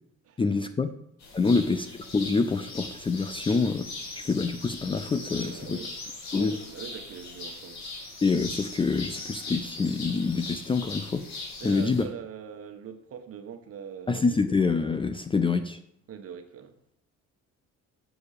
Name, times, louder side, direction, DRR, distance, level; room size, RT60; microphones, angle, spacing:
voice 1, 0.4-0.9 1.3-1.9 2.1-3.9 4.2-5.8 6.3-6.5 8.2-11.3 11.6-12.0 14.1-15.8, left 4 dB, 15° left, 10 dB, 0.4 m, -26 dB
sound 1, 1.2-12.0, left 3 dB, 65° left, 2.9 m, -40 dB
voice 2, 5.4-6.0 6.3-7.8 11.6-14.4 16.1-16.7, right 7 dB, 50° right, 7 dB, 1.2 m, -42 dB
7.0 x 6.7 x 6.6 m, 0.72 s
cardioid pair, 130°, 31 cm